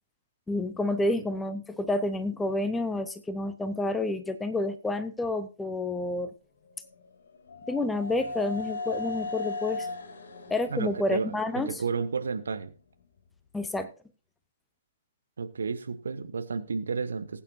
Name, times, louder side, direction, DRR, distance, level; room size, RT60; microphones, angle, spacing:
voice 1, 0.5-6.3 7.7-9.9 10.5-11.8 13.5-13.9, left 2 dB, 5° left, 11 dB, 0.8 m, -29 dB
sound 1, 6.6-12.5, left 3 dB, 55° left, 3.0 m, -38 dB
voice 2, 10.7-12.7 15.4-17.4, right 5 dB, 60° right, 10 dB, 1.2 m, -32 dB
19.5 x 8.9 x 2.6 m, 0.34 s
figure-of-eight pair, 120°, 0 cm